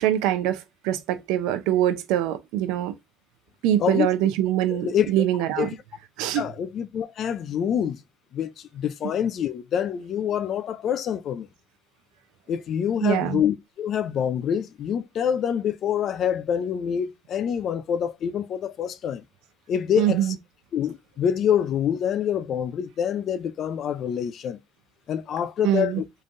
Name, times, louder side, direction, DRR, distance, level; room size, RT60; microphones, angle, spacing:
voice 1, 0.0-2.9 3.6-5.7 6.2-6.5 13.0-13.4 20.0-20.3 25.6-26.0, right 12 dB, 90° right, 0.7 m, -24 dB
voice 2, 4.7-5.1 5.6-5.7 6.3-8.0 8.3-11.5 12.5-19.2 19.7-20.3 20.7-24.6 25.1-26.0, left 9 dB, 55° left, 0.5 m, -26 dB
3.7 x 3.3 x 2.6 m
cardioid pair, 100°, 0 cm